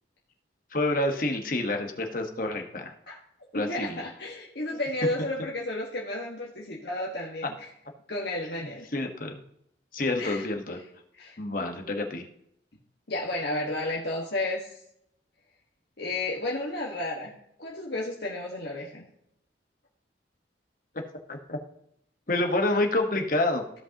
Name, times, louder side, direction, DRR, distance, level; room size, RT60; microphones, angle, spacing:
voice 1, 0.7-2.9 3.5-4.0 8.9-9.4 9.9-10.8 11.4-12.2 21.3-21.6 22.3-23.6, left 2 dB, 50° left, 4 dB, 1.1 m, -28 dB
voice 2, 3.5-7.7 8.1-8.9 10.2-10.4 11.1-11.4 13.1-14.8 16.0-17.3 17.6-19.0, left 2 dB, 65° left, -3 dB, 1.4 m, -32 dB
15.0 x 5.5 x 2.8 m, 0.73 s
head